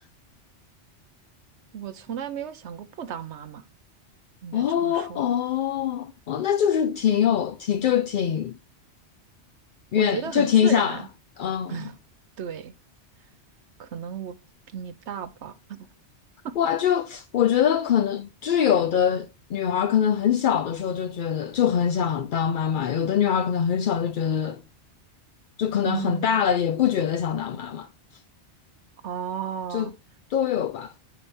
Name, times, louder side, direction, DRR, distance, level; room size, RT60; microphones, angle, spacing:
voice 1, 1.7-3.6 4.4-5.3 10.0-11.1 11.7-12.0 12.4-12.7 13.8-14.4 14.7-15.9 16.4-16.6 25.8-26.4 29.0-29.9, right 8 dB, 80° right, 1.1 m, -34 dB
voice 2, 4.5-8.6 9.9-11.0 11.4-11.8 16.6-24.6 25.6-27.9 29.7-29.9 30.3-30.9, left 9 dB, 60° left, 0.6 m, -23 dB
9.9 x 3.4 x 4.3 m
omnidirectional pair, 1.2 m